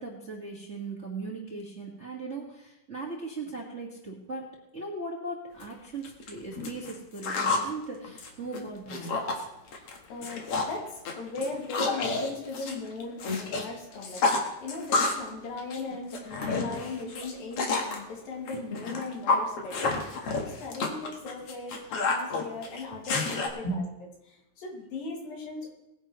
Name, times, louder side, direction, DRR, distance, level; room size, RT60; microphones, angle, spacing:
voice 1, 0.0-9.2 23.6-23.8, right 3 dB, 30° right, -3 dB, 1.4 m, -38 dB
sound 1, 5.6-5.7 6.0-7.7 8.0-9.4 9.7-10.0 10.2-10.8 11.1-13.6 13.9-15.3 15.6-18.0 18.5-23.5, left 3 dB, 55° left, 2.1 m, -29 dB
voice 2, 9.4-23.8 24.3-25.7, left 3 dB, 90° left, 0 dB, 3.9 m, -38 dB
20.5 x 10.0 x 3.1 m, 0.87 s
omnidirectional pair, 3.9 m